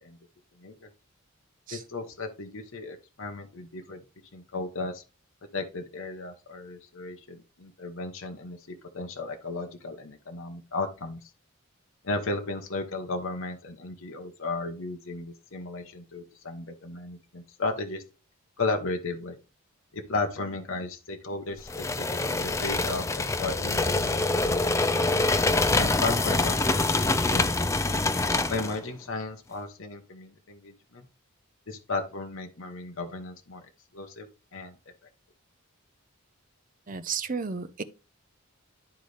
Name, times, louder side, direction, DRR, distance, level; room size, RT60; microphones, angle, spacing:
voice 1, 0.6-0.9 1.7-4.0 4.3-5.0 5.5-11.3 12.0-18.0 18.6-19.4 19.9-24.9 25.7-27.5 28.5-31.0 31.7-33.6 33.9-34.7, left 3 dB, 65° left, 0.9 m, -35 dB
sound 1, 21.7-28.8, left 2 dB, 15° left, 0.4 m, -25 dB
voice 2, 36.9-37.8, right 5 dB, 40° right, 0.5 m, -32 dB
11.5 x 3.9 x 3.3 m
head